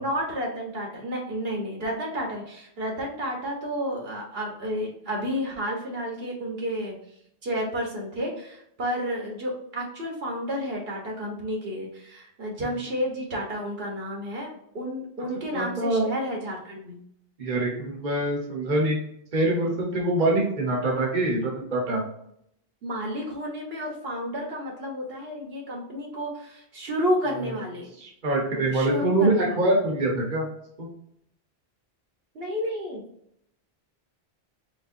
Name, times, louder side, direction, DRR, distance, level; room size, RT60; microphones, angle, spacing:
voice 1, 0.0-6.9 7.4-17.0 22.8-27.9 28.5-29.5 32.3-33.0, equal, 65° right, 0 dB, 1.3 m, -31 dB
voice 2, 15.5-16.1 17.4-19.0 19.3-22.0 27.4-27.6 28.0-30.5 30.8-30.9, right 2 dB, 50° right, -1 dB, 1.1 m, -24 dB
4.2 x 3.4 x 2.6 m, 0.72 s
omnidirectional pair, 1.1 m